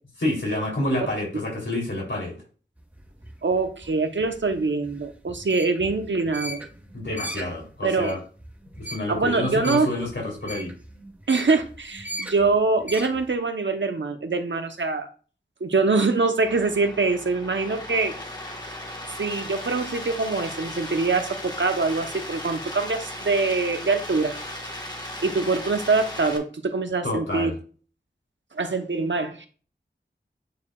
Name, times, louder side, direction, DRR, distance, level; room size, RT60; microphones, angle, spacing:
voice 1, 0.2-2.4 6.9-8.2 8.8-10.7 27.0-27.5, left 1 dB, 80° left, -3 dB, 3.4 m, -28 dB
sound 1, 2.8-13.3, equal, 10° right, 1.1 m, -39 dB
voice 2, 3.4-6.6 7.8-8.2 9.1-9.9 11.3-15.1 15.6-18.1 19.2-24.3 25.2-27.5 28.5-29.5, right 3 dB, 75° right, 7 dB, 1.0 m, -24 dB
sound 2, 16.4-26.4, left 1 dB, 20° left, 1.6 m, -37 dB
9.3 x 4.7 x 2.4 m, 0.39 s
wide cardioid pair, 50°, 19 cm